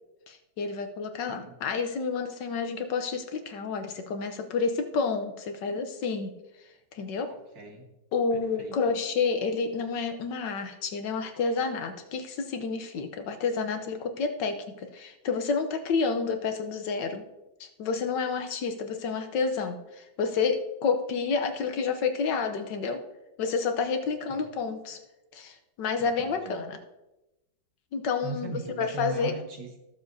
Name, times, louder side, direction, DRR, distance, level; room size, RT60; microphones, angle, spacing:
voice 1, 0.3-6.3 6.9-7.3 8.1-17.2 17.6-23.0 23.4-25.0 25.3-26.8 27.9-29.4, left 5 dB, 70° left, 7 dB, 1.4 m, -29 dB
voice 2, 7.3-7.9 8.3-8.8 24.3-24.5 26.0-26.6 28.2-29.8, right 4 dB, 70° right, 3 dB, 2.1 m, -39 dB
19.0 x 7.1 x 2.7 m, 0.98 s
omnidirectional pair, 2.1 m